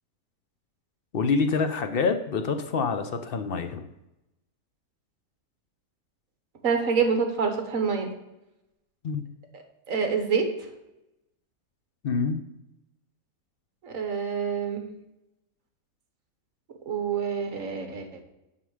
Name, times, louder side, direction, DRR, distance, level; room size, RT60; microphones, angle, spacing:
voice 1, 1.1-3.9 9.0-9.2 12.0-12.4, left 5 dB, 50° left, 8 dB, 0.7 m, -26 dB
voice 2, 6.6-8.1 9.5-10.5 13.8-14.8 16.9-18.2, right 6 dB, 55° right, 5 dB, 1.7 m, -27 dB
9.9 x 5.8 x 4.9 m, 0.91 s
omnidirectional pair, 1.8 m